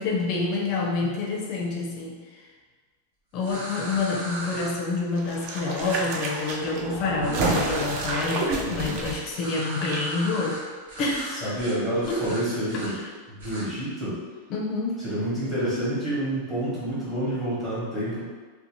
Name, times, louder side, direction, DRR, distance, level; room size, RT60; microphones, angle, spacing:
voice 1, 0.0-2.2 3.3-10.6 11.0-11.6 12.1-12.4 12.8-12.9 14.5-15.1, left 3 dB, 35° left, -1 dB, 0.5 m, -28 dB
sound 1, 3.4-4.7 5.8-6.0 7.2-8.1 9.3-10.6 10.9-11.3 11.6-11.8 12.0-12.9 13.4-13.6, right 1 dB, 75° right, 1.1 m, -37 dB
sound 2, 5.2-10.0 10.3-10.4, right 2 dB, 40° right, 0.4 m, -30 dB
voice 2, 8.6-9.0 11.3-13.0 13.3-14.2 15.0-18.3, right 1 dB, 10° right, -11 dB, 1.0 m, -28 dB
2.6 x 2.1 x 3.0 m, 1.4 s
supercardioid pair, 165°, 0 cm